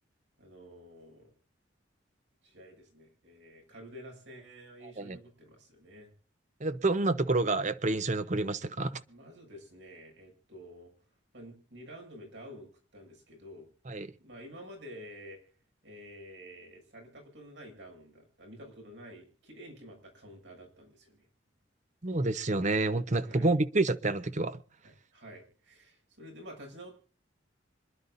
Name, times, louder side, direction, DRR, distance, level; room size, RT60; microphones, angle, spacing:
voice 1, 0.4-1.3 2.4-6.1 9.1-10.9 11.3-13.7 14.2-15.4 15.8-21.3 22.1-22.2 23.3-23.5 24.8-26.9, equal, 70° right, 7.4 m, -50 dB
voice 2, 6.6-9.0 13.9-14.1 22.0-24.6, right 2 dB, 40° right, 0.9 m, -28 dB
26.5 x 11.5 x 2.6 m
head